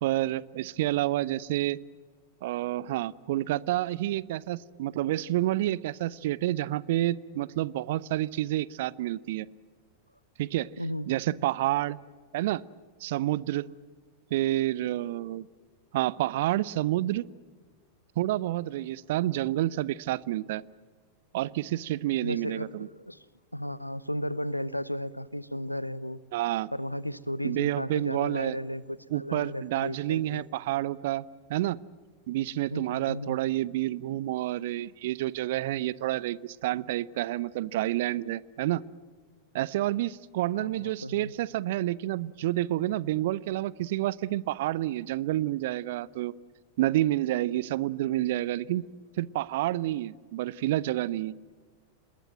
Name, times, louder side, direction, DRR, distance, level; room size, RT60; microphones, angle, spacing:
voice 1, 0.0-1.8 2.4-9.5 10.4-10.7 11.1-12.0 12.3-12.6 13.0-13.7 14.3-15.5 15.9-17.2 18.2-20.6 21.3-22.9 26.3-26.7 27.4-28.6 29.1-31.2 31.5-31.8 32.3-38.8 39.5-46.3 46.8-48.9 49.2-51.3, right 15 dB, 55° right, 22 dB, 0.7 m, -29 dB
voice 2, 22.2-23.2 23.5-26.2 26.7-30.5 32.7-33.4 40.5-41.3, equal, 90° left, 20 dB, 0.8 m, -34 dB
27.5 x 21.0 x 7.6 m, 1.5 s
figure-of-eight pair, 90°, 0 cm